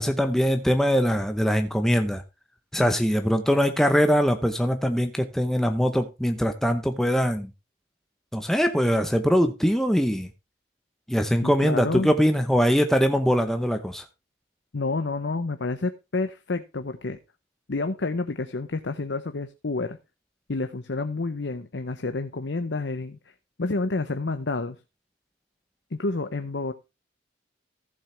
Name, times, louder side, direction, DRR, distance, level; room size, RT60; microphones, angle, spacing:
voice 1, 0.0-2.2 2.7-7.5 8.3-10.3 11.1-14.0, equal, ahead, 6 dB, 0.8 m, -22 dB
voice 2, 11.4-12.1 14.7-17.2 17.7-20.0 20.5-23.2 23.6-24.8 25.9-26.7, left 3 dB, 70° left, 8 dB, 0.8 m, -29 dB
14.5 x 7.1 x 3.4 m, 0.26 s
head